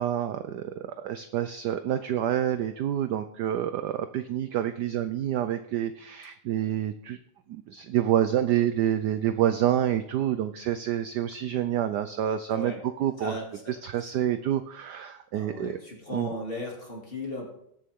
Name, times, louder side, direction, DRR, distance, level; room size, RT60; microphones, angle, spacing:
voice 1, 0.0-7.2 7.5-13.4 13.7-15.8 16.1-16.3, right 11 dB, 75° right, 10 dB, 0.9 m, -28 dB
voice 2, 12.5-12.8 13.2-13.7 15.3-17.5, left 1 dB, 25° left, -1 dB, 2.7 m, -36 dB
20.0 x 7.0 x 3.6 m, 0.74 s
omnidirectional pair, 2.4 m